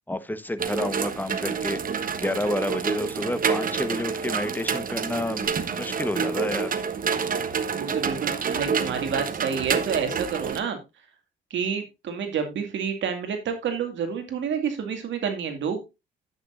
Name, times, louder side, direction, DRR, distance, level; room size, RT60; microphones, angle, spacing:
voice 1, 0.1-6.8, left 1 dB, 10° left, 1.1 m, -30 dB
sound 1, 0.6-10.6, right 6 dB, 45° right, 1.1 m, -28 dB
voice 2, 7.6-10.8 11.5-15.8, right 6 dB, 70° right, 2.3 m, -29 dB
10.5 x 8.6 x 2.5 m
cardioid pair, 90°, 20 cm